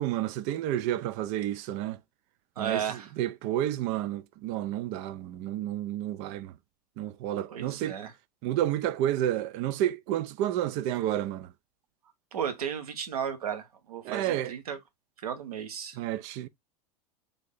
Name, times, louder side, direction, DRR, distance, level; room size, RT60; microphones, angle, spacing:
voice 1, 0.0-2.0 2.6-6.5 7.0-8.0 8.4-11.5 14.0-14.5 16.0-16.5, right 12 dB, 35° right, 0.4 m, -30 dB
voice 2, 2.6-3.1 7.5-8.1 12.3-14.8 15.2-16.0, right 8 dB, 65° right, 0.9 m, -34 dB
3.4 x 2.7 x 3.8 m
figure-of-eight pair, 85°, 20 cm